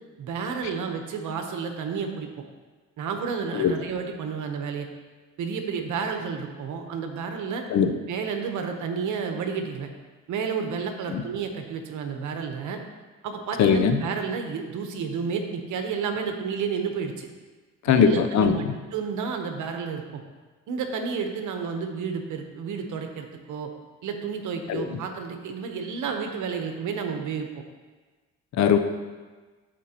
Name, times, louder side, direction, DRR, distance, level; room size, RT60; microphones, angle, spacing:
voice 1, 0.2-2.3 3.0-4.9 5.4-7.6 8.1-9.9 10.3-12.8 13.2-17.3 17.9-18.6 18.9-20.2 20.7-23.7 24.0-27.6, right 6 dB, 80° right, 4 dB, 1.0 m, -31 dB
voice 2, 13.6-14.0 17.8-18.7 24.7-25.0 28.6-28.8, left 7 dB, 65° left, 8 dB, 0.7 m, -20 dB
13.0 x 4.5 x 2.9 m, 1.4 s
cardioid pair, 90°, 30 cm